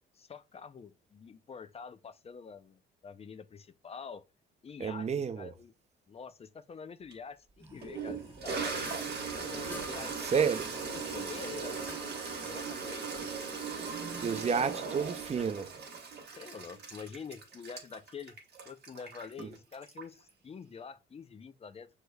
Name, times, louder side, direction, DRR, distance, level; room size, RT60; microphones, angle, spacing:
voice 1, 0.1-4.2 4.6-5.7 6.1-8.8 9.4-10.1 10.8-11.8 12.4-13.3 14.6-15.0 16.3-18.4 18.7-21.9, left 6 dB, 30° left, 0.5 m, -46 dB
voice 2, 4.8-5.5 10.2-10.7 14.2-15.7 19.4-19.5, right 6 dB, 35° right, 0.5 m, -30 dB
sound 1, 7.0-7.1 7.5-12.7, right 2 dB, 15° right, 1.4 m, -52 dB
Toilet flush, 7.1-7.2 7.8-20.3, right 5 dB, 55° right, 1.3 m, -39 dB
sound 2, 8.8-9.3 9.7-10.0 11.0-12.0 12.3-12.6 12.8-13.3 13.6-14.9, left 2 dB, 10° left, 0.9 m, -48 dB
6.2 x 3.2 x 2.2 m
cardioid pair, 90°, 20 cm